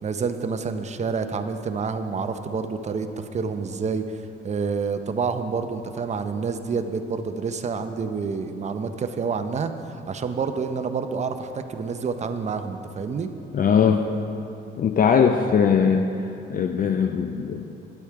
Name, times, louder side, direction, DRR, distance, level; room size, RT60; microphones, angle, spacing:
voice 1, 0.0-13.3, right 5 dB, 35° right, 8 dB, 0.6 m, -28 dB
voice 2, 13.5-14.1 14.8-16.1 16.5-17.7, left 6 dB, 45° left, 6 dB, 0.5 m, -20 dB
9.8 x 8.4 x 4.6 m, 2.8 s
cardioid pair, 90°, 20 cm